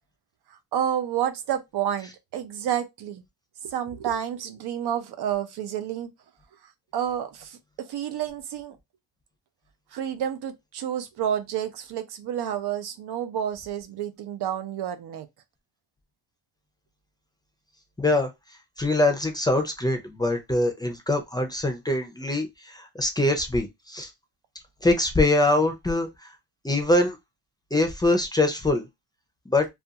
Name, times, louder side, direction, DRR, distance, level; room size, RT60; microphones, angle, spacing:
voice 1, 0.7-3.2 3.6-6.1 6.9-8.8 9.9-15.3, right 10 dB, 85° right, 0.6 m, -30 dB
voice 2, 18.0-18.3 18.8-24.1 24.8-26.1 26.6-27.2 27.7-28.9 29.5-29.7, left 2 dB, 10° left, 0.4 m, -23 dB
2.4 x 2.3 x 2.7 m
wide cardioid pair, 140°, 38 cm